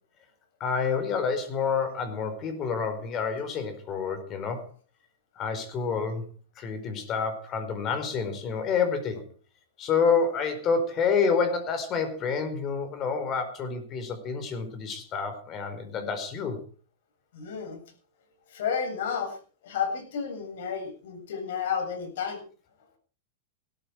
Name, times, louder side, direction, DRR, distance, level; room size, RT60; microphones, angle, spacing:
voice 1, 0.6-4.6 5.4-6.3 6.6-9.3 9.8-16.6, left 5 dB, 30° left, 9 dB, 4.7 m, -28 dB
voice 2, 17.3-17.8 18.5-19.4 19.6-22.4, left 6 dB, 75° left, 7 dB, 7.4 m, -31 dB
18.0 x 13.5 x 4.8 m, 0.40 s
supercardioid pair, 135°, 0 cm